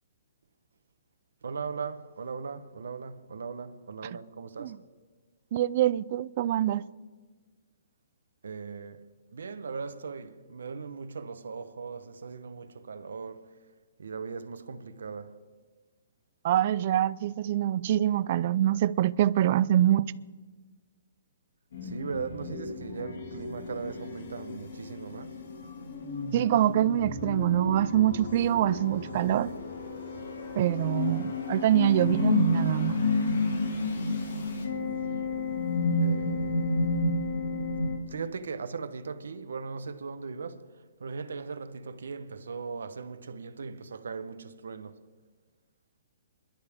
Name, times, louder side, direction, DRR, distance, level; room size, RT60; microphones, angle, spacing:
voice 1, 1.4-4.8 8.4-9.0 9.3-13.5 14.0-15.4 21.8-25.4 36.0-37.0 38.0-40.7 41.0-45.0, right 5 dB, 90° right, 1.0 m, -39 dB
voice 2, 5.5-6.8 16.4-20.1 26.3-29.5 30.6-32.9, right 12 dB, 40° right, 0.4 m, -25 dB
sound 1, 21.7-38.0, left 3 dB, 70° left, 3.0 m, -31 dB
27.0 x 11.5 x 3.6 m
hypercardioid pair, 165°, 0 cm